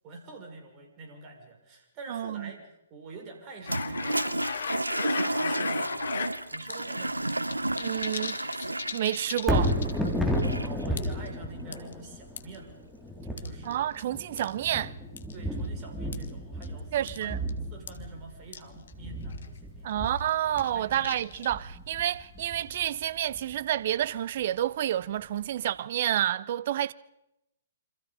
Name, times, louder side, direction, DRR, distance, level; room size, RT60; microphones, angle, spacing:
voice 1, 0.0-4.5 4.8-7.5 10.6-12.8 13.4-13.9 15.3-17.4 17.7-19.9 20.4-21.3, right 3 dB, 30° right, 6.1 m, -46 dB
voice 2, 2.1-2.5 7.8-9.8 13.6-14.9 16.9-17.4 19.8-26.9, right 12 dB, 50° right, 0.8 m, -29 dB
sound 1, 3.6-6.3 6.7-6.8 7.1-10.1 10.4-10.5 11.0-11.3 11.7-12.6 13.4-14.0 14.4-14.5 15.2-15.3 16.1-16.3 16.6-16.7 17.1-17.2 17.5-17.6 17.9-18.0 18.5-18.6 18.9-19.0 19.3-19.6 20.0-21.6, left 6 dB, 65° left, 2.0 m, -36 dB
Toilet flush, 3.6-10.9, right 1 dB, 90° right, 1.0 m, -32 dB
Thunder, 9.4-23.6 24.0-24.1, equal, ahead, 3.6 m, -33 dB
27.5 x 26.0 x 5.3 m
figure-of-eight pair, 120°, 0 cm